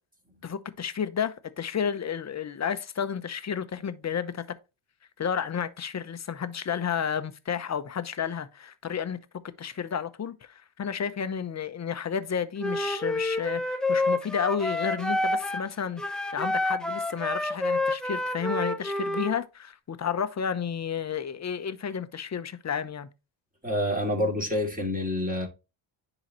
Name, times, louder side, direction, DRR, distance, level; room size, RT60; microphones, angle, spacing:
voice 1, 0.4-4.5 5.2-9.2 9.6-23.1, left 7 dB, 35° left, 0.8 m, -31 dB
Wind instrument woodwind instrument, 12.6-15.7 16.0-19.4, left 2 dB, ahead, 0.7 m, -28 dB
voice 2, 23.6-25.5, left 1 dB, 15° right, 2.7 m, -27 dB
10.0 x 4.0 x 3.0 m
cardioid pair, 80°, 50 cm